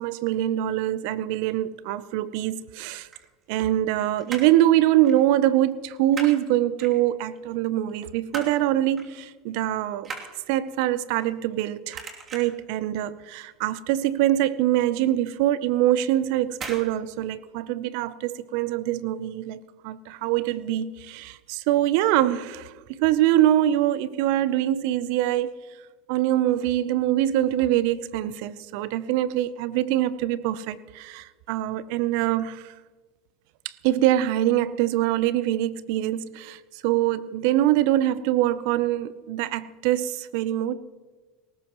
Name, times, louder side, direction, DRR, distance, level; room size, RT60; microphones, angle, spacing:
voice 1, 0.0-3.1 3.5-10.1 10.5-12.0 12.3-25.6 26.1-32.7 33.6-40.7, right 13 dB, 65° right, 0.6 m, -24 dB
sound 1, 3.0-3.9 4.2-4.6 5.0-5.2 5.5-6.4 6.8-7.4 7.8-8.6 9.0-9.2 9.5-11.6 11.9-12.7 13.1-13.4 13.7-13.8 14.1-14.2 14.7-14.8 15.6-15.9 16.5-16.9 17.1-17.2, right 4 dB, 35° right, 2.9 m, -38 dB
19.0 x 18.0 x 3.1 m
hypercardioid pair, 85°, 0 cm